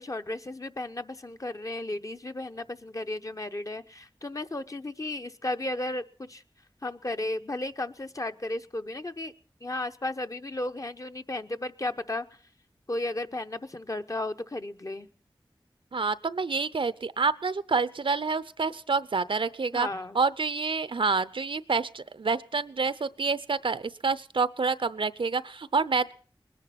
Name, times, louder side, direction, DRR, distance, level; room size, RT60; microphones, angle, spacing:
voice 1, 0.0-6.4 6.8-9.3 9.6-12.3 12.9-15.1 19.7-20.2, left 2 dB, 40° left, 8 dB, 0.8 m, -34 dB
voice 2, 15.9-19.9 20.1-26.1, right 4 dB, 75° right, 16 dB, 0.6 m, -28 dB
20.5 x 10.5 x 5.8 m, 0.42 s
wide cardioid pair, 60°, 9 cm